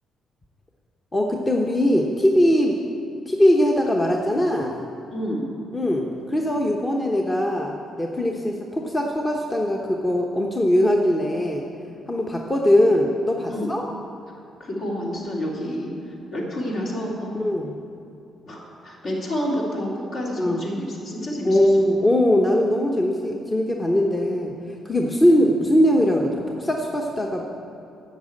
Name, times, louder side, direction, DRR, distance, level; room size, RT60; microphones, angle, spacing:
voice 1, 1.1-2.8 3.3-4.7 5.7-11.6 12.1-13.8 17.3-17.7 20.4-20.6 21.4-24.5 24.8-27.4, left 1 dB, 20° left, 0 dB, 0.9 m, -21 dB
voice 2, 5.1-5.4 13.5-13.7 14.6-17.4 18.5-21.7, equal, 60° left, -3 dB, 2.8 m, -29 dB
9.2 x 6.5 x 8.7 m, 2.6 s
cardioid pair, 90°, 0 cm